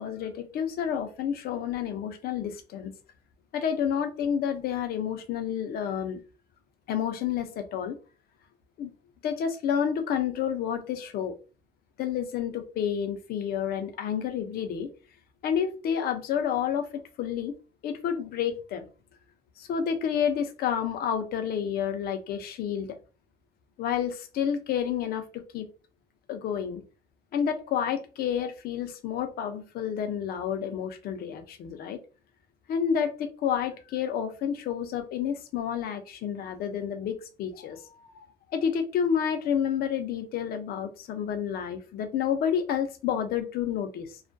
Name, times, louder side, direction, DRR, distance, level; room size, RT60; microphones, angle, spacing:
voice 1, 0.0-2.9 3.5-6.2 6.9-8.0 8.8-8.9 9.2-11.4 12.0-14.9 15.4-17.5 17.8-18.9 19.6-23.0 23.8-25.7 26.3-26.8 27.3-32.0 32.7-38.3 38.5-44.2, left 8 dB, 65° left, 0.5 m, -30 dB
2.3 x 2.1 x 2.5 m
cardioid pair, 110°, 17 cm